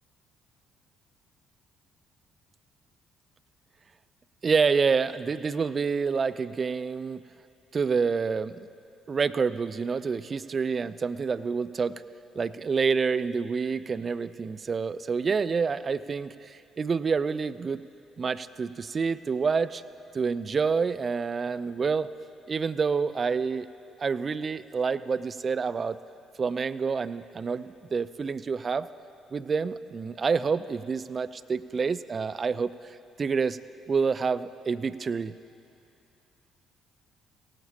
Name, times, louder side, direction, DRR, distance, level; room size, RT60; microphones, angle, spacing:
voice 1, 4.4-7.2 7.7-8.7 9.1-11.9 12.4-17.8 18.2-19.8 20.1-22.1 22.5-23.7 24.0-26.0 26.4-28.9 29.3-32.7 33.2-33.6 33.9-35.3, right 5 dB, 35° right, 14 dB, 0.3 m, -28 dB
17.0 x 14.0 x 2.8 m, 2.7 s
figure-of-eight pair, 45°, 0 cm